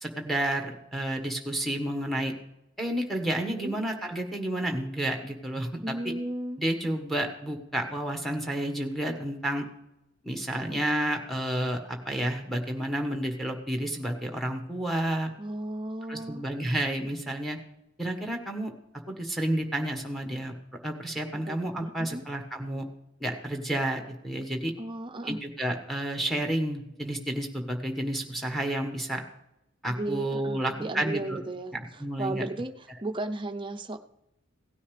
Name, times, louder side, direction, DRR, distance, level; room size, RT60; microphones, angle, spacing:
voice 1, 0.0-2.3 2.8-6.1 6.6-9.6 10.2-15.3 16.1-17.6 18.0-18.7 19.1-20.5 20.8-22.9 23.2-24.7 25.2-29.2 29.8-31.4 32.0-32.4, right 1 dB, ahead, 3 dB, 1.4 m, -30 dB
voice 2, 5.8-6.6 15.4-16.4 21.3-22.2 24.8-25.4 29.9-31.8 32.2-34.0, right 2 dB, 25° right, 7 dB, 0.6 m, -35 dB
17.0 x 9.7 x 3.3 m, 0.86 s
head